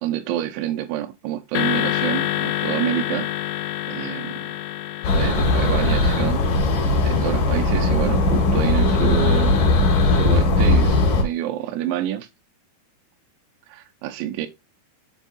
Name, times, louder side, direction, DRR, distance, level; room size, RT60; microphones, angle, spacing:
voice 1, 0.0-3.3 3.9-4.3 5.1-6.5 7.0-9.5 10.1-12.3 13.7-14.5, right 12 dB, 85° right, 3.0 m, -27 dB
sound 1, 1.6-7.9, left 14 dB, 85° left, 3.1 m, -28 dB
sound 2, 5.0-11.2, left 2 dB, 50° left, 3.2 m, -18 dB
7.2 x 4.5 x 4.1 m
omnidirectional pair, 5.5 m